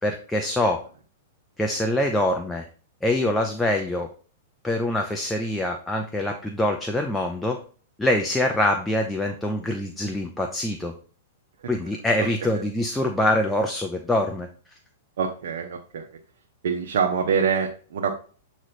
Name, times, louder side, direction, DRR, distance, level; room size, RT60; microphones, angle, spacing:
voice 1, 0.0-0.8 1.6-2.7 3.0-4.1 4.6-7.6 8.0-10.9 11.7-14.5, left 1 dB, 5° left, 2 dB, 0.6 m, -24 dB
voice 2, 15.2-16.1 16.6-18.1, right 6 dB, 75° right, 2 dB, 0.8 m, -25 dB
7.6 x 3.1 x 4.2 m, 0.41 s
hypercardioid pair, 140°, 0 cm